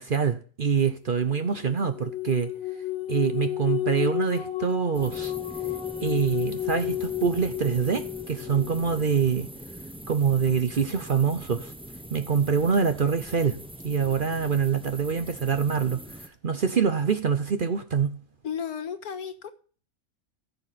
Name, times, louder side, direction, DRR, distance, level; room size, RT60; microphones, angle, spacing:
voice 1, 0.0-2.5 3.1-5.3 6.0-9.5 10.1-11.7 12.1-13.6 13.8-18.2, right 6 dB, 50° right, 0.7 m, -25 dB
sound 1, 1.2-9.0, left 13 dB, 65° left, 1.6 m, -32 dB
sound 2, 4.9-16.3, right 1 dB, 10° right, 0.3 m, -42 dB
voice 2, 18.4-19.5, left 7 dB, 85° left, 1.7 m, -33 dB
15.5 x 6.9 x 4.1 m
omnidirectional pair, 1.5 m